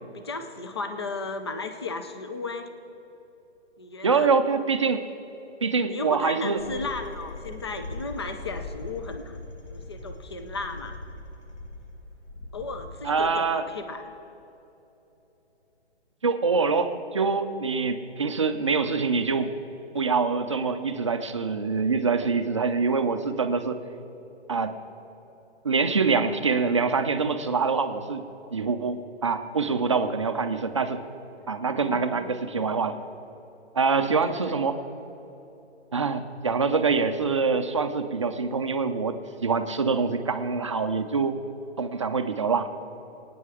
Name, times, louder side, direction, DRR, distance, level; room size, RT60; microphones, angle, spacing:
voice 1, 0.1-2.7 3.8-4.3 5.9-11.0 12.5-14.0 31.8-32.3 34.0-34.6, left 3 dB, 25° left, 8 dB, 0.5 m, -35 dB
voice 2, 4.0-5.0 5.6-6.6 13.0-13.6 16.2-19.5 19.9-23.8 24.5-24.7 25.6-28.2 28.5-31.0 31.5-33.0 33.7-34.8 35.9-41.4 41.8-42.7, right 4 dB, 30° right, 8 dB, 0.5 m, -25 dB
sound 1, 6.6-13.3, left 2 dB, 80° left, 2.4 m, -41 dB
24.0 x 9.4 x 4.9 m, 3.0 s
hypercardioid pair, 170°, 34 cm